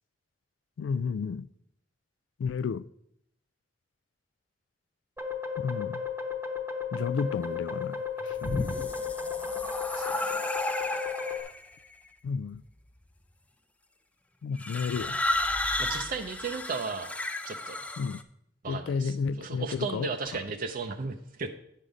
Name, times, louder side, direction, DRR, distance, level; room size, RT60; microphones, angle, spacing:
voice 1, 0.8-1.5 2.4-2.9 5.6-6.0 6.9-8.9 12.2-12.6 14.4-15.2 18.0-18.2 18.7-20.1, left 5 dB, 90° left, 0.3 m, -32 dB
sound 1, 5.2-11.4, left 6 dB, 10° right, 0.9 m, -34 dB
sound 2, 8.2-11.7 12.5-13.0 14.6-18.2, left 1 dB, 10° left, 0.4 m, -33 dB
voice 2, 10.0-10.3 15.8-17.1 17.5-17.8 18.6-21.5, right 4 dB, 50° right, 0.5 m, -35 dB
9.1 x 5.5 x 4.9 m
head